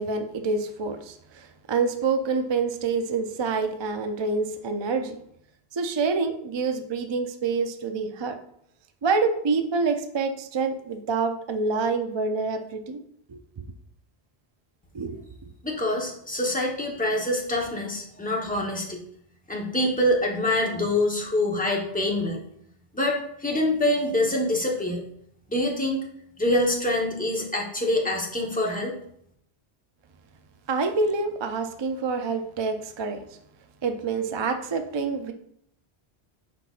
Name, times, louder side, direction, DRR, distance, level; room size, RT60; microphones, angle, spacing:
voice 1, 0.0-5.2 5.7-8.4 9.0-13.0 13.3-13.4 14.9-15.2 30.7-33.2 33.8-35.3, right 4 dB, 50° right, 7 dB, 0.3 m, -27 dB
voice 2, 15.6-19.0 19.5-22.4 22.9-25.0 25.5-26.1 26.4-28.9, left 1 dB, 10° left, -1 dB, 1.0 m, -25 dB
9.7 x 4.2 x 2.5 m, 0.71 s
omnidirectional pair, 1.1 m